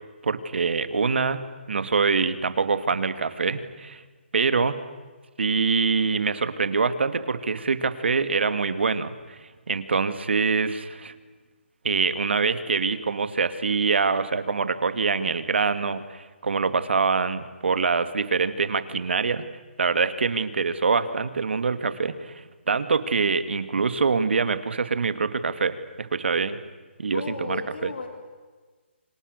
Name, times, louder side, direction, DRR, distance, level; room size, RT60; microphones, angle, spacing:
voice 1, 0.2-1.4 1.7-4.0 4.3-4.8 5.4-9.4 9.7-11.1 11.8-19.4 19.8-26.6 27.0-27.2 27.5-27.6, right 4 dB, 65° right, 12 dB, 2.3 m, -24 dB
voice 2, 27.1-28.1, left 4 dB, 55° left, 5 dB, 3.3 m, -34 dB
30.0 x 26.5 x 6.7 m, 1.4 s
hypercardioid pair, 170°, 7 cm